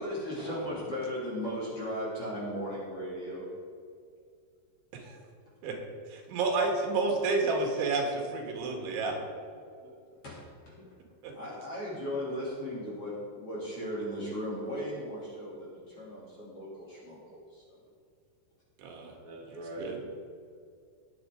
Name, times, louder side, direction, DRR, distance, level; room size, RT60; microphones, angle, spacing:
voice 1, 0.0-3.5 10.2-10.3 10.7-10.8 11.3-17.8, equal, 35° left, -7 dB, 3.5 m, -37 dB
voice 2, 6.1-9.1 11.2-11.3 18.8-19.1 19.8-20.0, right 3 dB, 80° right, 1 dB, 4.1 m, -30 dB
voice 3, 8.6-9.4 9.8-9.9 10.8-10.9 19.2-20.1, right 1 dB, 30° right, -7 dB, 1.8 m, -45 dB
20.5 x 8.4 x 3.8 m, 2.3 s
omnidirectional pair, 5.4 m